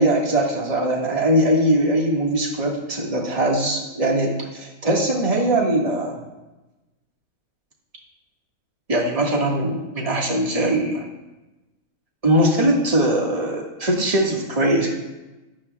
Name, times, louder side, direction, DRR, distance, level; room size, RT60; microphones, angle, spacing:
voice 1, 0.0-6.2 8.9-11.0 12.2-14.9, right 1 dB, 25° right, -2 dB, 1.6 m, -21 dB
15.5 x 11.0 x 2.3 m, 1.1 s
omnidirectional pair, 1.5 m